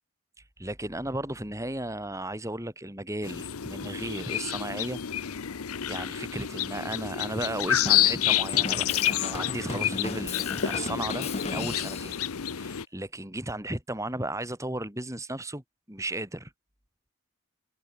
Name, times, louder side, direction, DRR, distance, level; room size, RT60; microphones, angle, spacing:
voice 1, 0.6-5.0 5.9-12.1 12.5-16.5, right 1 dB, 15° right, 5.6 m, -35 dB
sound 1, 3.2-12.8, left 11 dB, 85° left, 0.8 m, -29 dB
Drum kit / Drum, 7.8-12.3, left 3 dB, 30° left, 1.0 m, -36 dB
head